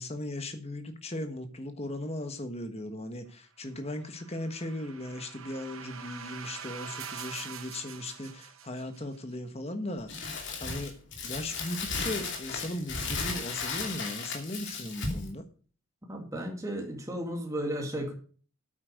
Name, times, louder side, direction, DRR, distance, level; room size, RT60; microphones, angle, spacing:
voice 1, 0.0-10.1 10.6-10.9 11.2-15.4, left 1 dB, 30° left, 7 dB, 1.4 m, -37 dB
sound 1, 3.9-9.2, right 7 dB, 65° right, 1.3 m, -44 dB
Crumpling crinkling, 10.1-15.3, left 4 dB, 55° left, 2.7 m, -35 dB
voice 2, 16.1-18.1, equal, 15° right, 1 dB, 2.2 m, -34 dB
8.8 x 8.5 x 6.5 m, 0.41 s
head